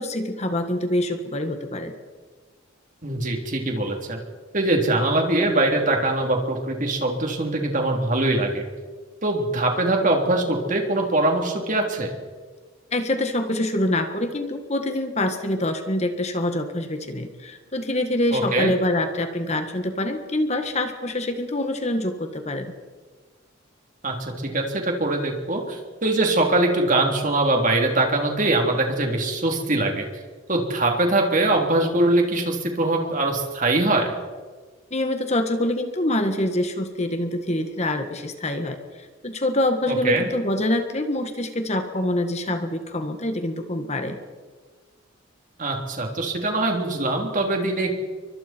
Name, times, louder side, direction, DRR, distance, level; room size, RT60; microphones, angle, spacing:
voice 1, 0.0-1.9 12.9-22.7 34.9-44.2, left 1 dB, 35° left, 6 dB, 1.7 m, -25 dB
voice 2, 3.0-4.2 4.5-8.6 9.2-12.1 18.3-18.7 24.0-30.1 30.5-34.1 39.9-40.3 45.6-47.9, right 2 dB, 40° right, 2 dB, 3.6 m, -22 dB
30.0 x 24.0 x 4.6 m, 1.5 s
head